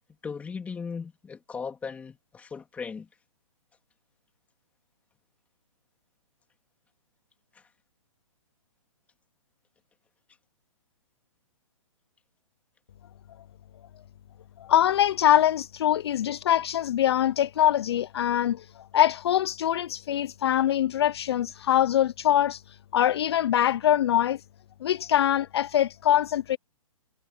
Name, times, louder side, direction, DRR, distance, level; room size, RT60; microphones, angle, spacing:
voice 1, 0.2-3.1 7.5-7.7, left 5 dB, 10° left, 3.3 m, -37 dB
voice 2, 14.6-18.7 18.9-24.4 24.8-26.6, left 11 dB, 45° left, 0.7 m, -23 dB
hypercardioid pair, 160°, 18 cm